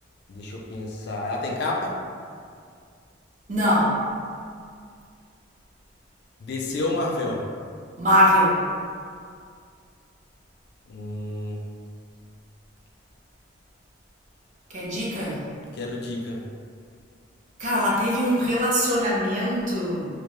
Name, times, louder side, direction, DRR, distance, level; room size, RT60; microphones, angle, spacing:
voice 1, 0.3-2.0 6.4-7.5 10.9-11.6 15.7-16.4, left 2 dB, 55° left, -1 dB, 0.3 m, -29 dB
voice 2, 3.5-3.9 8.0-8.5 14.7-15.4 17.6-20.1, equal, 35° right, -6 dB, 0.5 m, -22 dB
2.3 x 2.1 x 2.9 m, 2.2 s
head